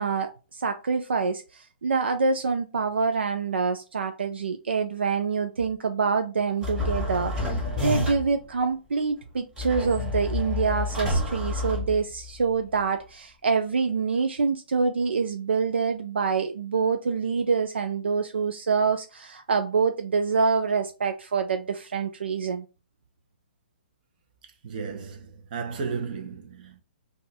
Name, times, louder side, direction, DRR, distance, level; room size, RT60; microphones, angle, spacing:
voice 1, 0.0-22.7, right 5 dB, 80° right, 0.4 m, -26 dB
sound 1, 6.6-8.4 9.6-12.4, left 2 dB, 10° right, 1.3 m, -29 dB
voice 2, 24.6-26.8, right 5 dB, 50° right, 0.8 m, -34 dB
2.5 x 2.4 x 3.9 m
hypercardioid pair, 130°, 6 cm